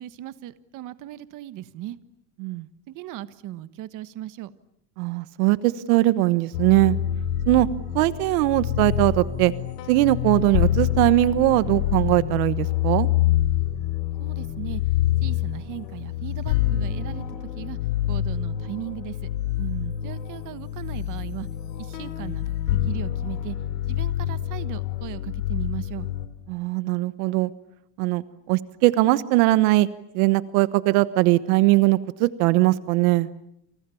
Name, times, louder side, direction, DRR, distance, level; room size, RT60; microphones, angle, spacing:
voice 1, 0.0-2.0 2.9-4.5 14.2-14.8 15.2-17.2 17.5-17.8 18.1-19.2 20.0-21.5 21.7-23.6 23.8-26.1, right 14 dB, 40° right, 13 dB, 1.4 m, -37 dB
voice 2, 5.0-7.0 7.5-7.7 7.9-9.5 9.9-13.1 19.6-19.9 26.5-27.5 28.0-29.9 30.1-33.3, right 18 dB, 65° right, 15 dB, 1.3 m, -20 dB
sound 1, 6.5-26.3, left 12 dB, 85° left, 4.0 m, -27 dB
29.0 x 29.0 x 7.1 m, 0.76 s
supercardioid pair, 145°, 47 cm